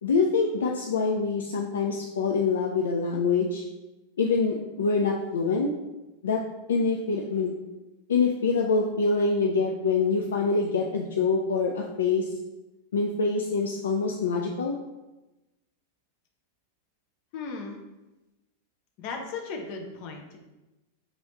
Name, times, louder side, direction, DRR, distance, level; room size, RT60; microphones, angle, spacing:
voice 1, 0.0-3.6 4.2-5.7 6.2-6.4 6.7-7.5 8.1-12.3 12.9-14.8, left 4 dB, 65° left, 1 dB, 0.4 m, -25 dB
voice 2, 17.3-17.8 19.0-20.4, left 4 dB, 45° left, 2 dB, 0.7 m, -36 dB
5.1 x 3.1 x 3.0 m, 1.0 s
figure-of-eight pair, 90°, 0 cm